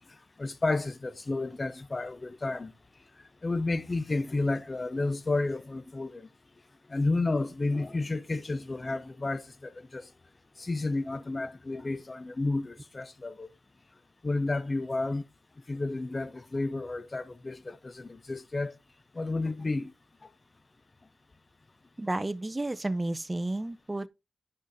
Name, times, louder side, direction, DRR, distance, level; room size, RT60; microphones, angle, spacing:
voice 1, 0.4-2.7 3.4-6.3 6.9-10.1 10.6-13.5 14.2-15.2 15.7-18.8 19.1-19.9 20.2-20.3, left 2 dB, 30° left, 0.6 m, -31 dB
voice 2, 22.0-24.1, right 2 dB, 20° right, 0.5 m, -32 dB
9.7 x 6.2 x 2.6 m
cardioid pair, 75°, 0 cm